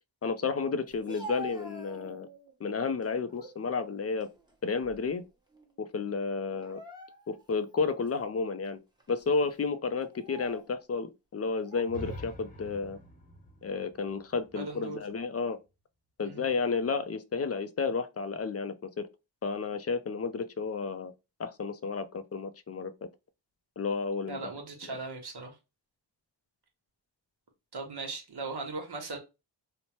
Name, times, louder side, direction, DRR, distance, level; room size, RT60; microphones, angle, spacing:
voice 1, 0.2-2.3 2.6-4.3 4.6-5.2 5.8-6.8 7.3-8.8 9.1-13.0 13.6-15.6 16.2-19.1 19.4-21.1 21.4-22.9 23.8-24.5 24.9-25.0, left 4 dB, 35° left, 0.4 m, -32 dB
Speech, 0.9-2.5 3.0-3.6 4.0-5.3 5.5-5.7 6.5-7.5 8.1-8.2 9.0-9.2 10.0-10.7 11.6-12.3, right 1 dB, 10° right, 1.0 m, -46 dB
sound 1, 11.9-15.7, equal, 20° left, 0.8 m, -46 dB
voice 2, 14.5-15.0 16.2-16.5 24.3-25.5 27.7-29.2, right 3 dB, 60° right, 1.1 m, -38 dB
2.8 x 2.1 x 2.9 m
cardioid pair, 45°, 45 cm